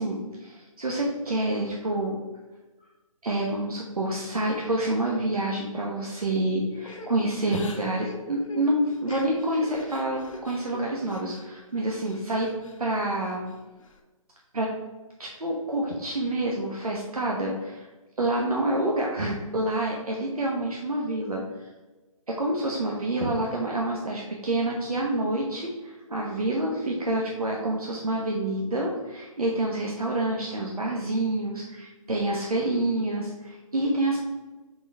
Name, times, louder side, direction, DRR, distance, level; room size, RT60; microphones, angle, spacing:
voice 1, 0.0-2.2 3.2-12.5 12.8-13.5 14.5-14.7 15.2-17.9 18.2-21.7 22.3-34.2, right 1 dB, 90° right, -2 dB, 1.0 m, -28 dB
Crying sobbing / Breathing, 6.8-11.5 11.8-12.8 13.2-14.0, left 4 dB, 65° left, 1.1 m, -43 dB
4.9 x 4.4 x 4.5 m, 1.2 s
figure-of-eight pair, 145°, 18 cm